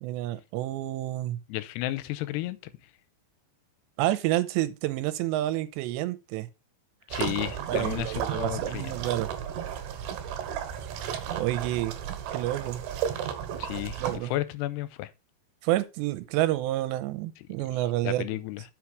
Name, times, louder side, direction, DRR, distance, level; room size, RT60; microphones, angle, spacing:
voice 1, 0.0-1.4 4.0-6.5 7.7-9.3 11.4-12.0 12.3-12.8 14.0-14.3 15.6-18.4, right 15 dB, 90° right, 2.9 m, -29 dB
voice 2, 1.5-2.7 7.1-8.9 13.6-15.1 18.0-18.6, left 16 dB, 80° left, 2.6 m, -33 dB
sound 1, 7.1-14.2, right 8 dB, 70° right, 3.1 m, -33 dB
6.0 x 5.8 x 6.2 m
omnidirectional pair, 5.0 m